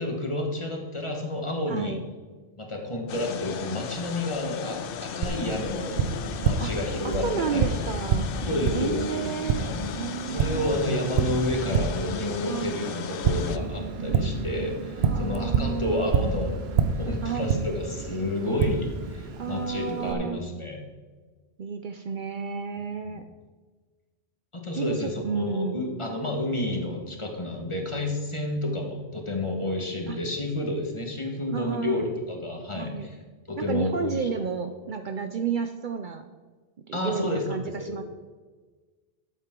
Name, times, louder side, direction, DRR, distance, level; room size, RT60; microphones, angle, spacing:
voice 1, 0.0-2.0 2.6-6.0 6.4-7.2 7.5-7.7 8.4-9.3 9.5-9.8 10.3-16.6 17.0-20.8 23.0-23.2 24.5-33.1 33.5-34.3 36.9-38.0, left 1 dB, 30° left, 1 dB, 1.4 m, -30 dB
voice 2, 1.7-2.0 6.6-6.7 7.0-8.3 8.7-9.7 9.9-10.8 12.5-12.9 15.0-16.2 17.2-17.7 19.4-20.4 21.6-23.2 24.7-25.9 30.1-30.2 31.5-32.1 32.7-33.1 33.6-36.3 36.9-38.0, right 6 dB, 55° right, 7 dB, 0.6 m, -31 dB
sound 1, 3.1-13.6, left 8 dB, 65° left, 0.7 m, -36 dB
Tap, 5.2-20.1, right 5 dB, 75° right, 1.0 m, -29 dB
12.0 x 8.1 x 3.7 m, 1.4 s
omnidirectional pair, 1.1 m